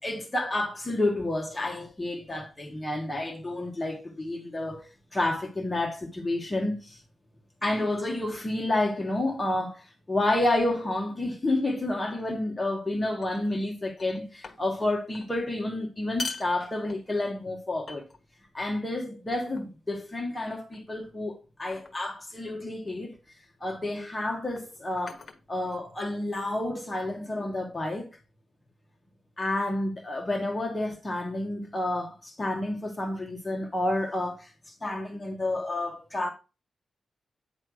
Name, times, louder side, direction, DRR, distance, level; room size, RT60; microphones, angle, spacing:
voice 1, 0.0-7.0 7.6-18.1 18.5-23.2 23.6-25.2 25.5-28.1 29.4-36.3, left 1 dB, 15° left, 1.1 m, -30 dB
sound 1, 12.1-12.4 13.2-13.7 14.0-14.9 15.1-15.3 16.0-17.3 17.9-18.5 19.3-19.8 20.7-21.0 21.7-22.1 23.3-23.5 24.4-26.2, left 4 dB, 40° left, 1.3 m, -42 dB
9.1 x 3.2 x 6.1 m
wide cardioid pair, 160°, 0 cm